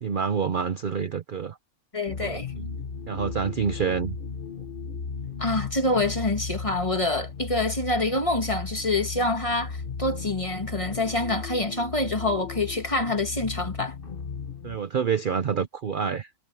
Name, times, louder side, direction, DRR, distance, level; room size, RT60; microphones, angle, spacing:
voice 1, 0.0-1.6 2.2-2.7 3.1-4.2 14.6-16.3, right 6 dB, 50° right, 0.6 m, -27 dB
voice 2, 1.9-2.5 5.4-13.9, left 2 dB, 20° left, 1.8 m, -26 dB
sound 1, 2.1-14.8, left 5 dB, 35° left, 1.2 m, -36 dB
omnidirectional pair, 1.7 m